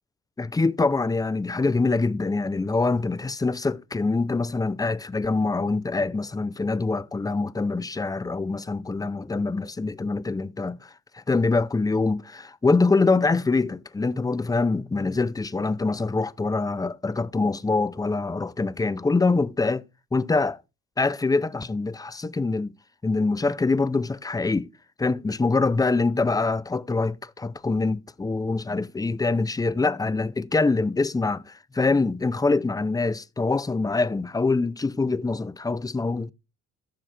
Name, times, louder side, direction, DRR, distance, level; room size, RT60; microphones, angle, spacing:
voice 1, 0.4-19.8 20.1-20.6 21.0-22.7 23.0-24.7 25.0-36.3, left 3 dB, 10° left, 0.5 m, -24 dB
14.0 x 6.3 x 3.3 m
cardioid pair, 90°, 30 cm